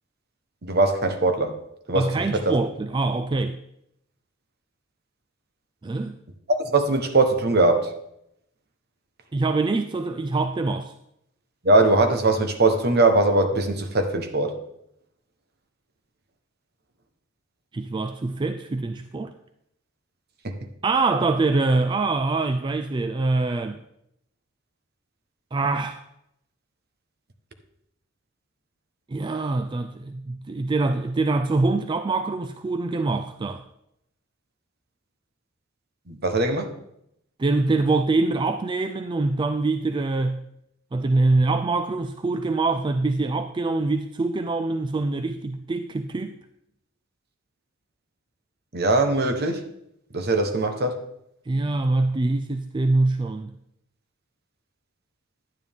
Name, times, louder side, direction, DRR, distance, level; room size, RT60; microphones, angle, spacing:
voice 1, 0.6-1.6 1.9-2.1 2.3-2.4 6.5-7.9 11.6-14.6 20.4-20.6 36.1-36.7 48.7-49.6 50.1-51.0, right 2 dB, 55° right, 7 dB, 1.1 m, -21 dB
voice 2, 1.9-3.6 5.8-6.1 9.3-10.9 17.7-19.3 20.8-23.8 25.5-26.0 29.1-33.6 37.4-40.4 40.9-46.4 51.5-53.5, right 3 dB, 25° right, 9 dB, 0.3 m, -24 dB
10.5 x 9.6 x 3.6 m, 0.78 s
head